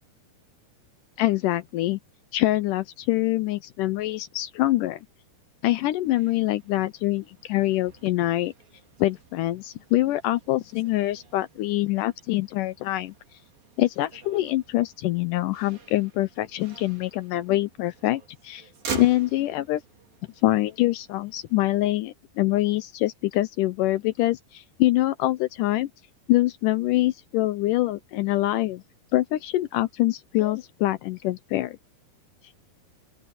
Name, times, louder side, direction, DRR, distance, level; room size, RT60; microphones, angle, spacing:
voice 1, 1.2-2.0 2.3-5.0 5.6-8.5 9.0-13.1 13.8-18.7 18.9-19.8 20.4-25.9 26.3-28.8 29.1-31.8, left 16 dB, 80° left, 2.0 m, -25 dB
Motor vehicle (road), 6.0-21.9, right 5 dB, 70° right, 6.2 m, -44 dB
open air
omnidirectional pair, 4.2 m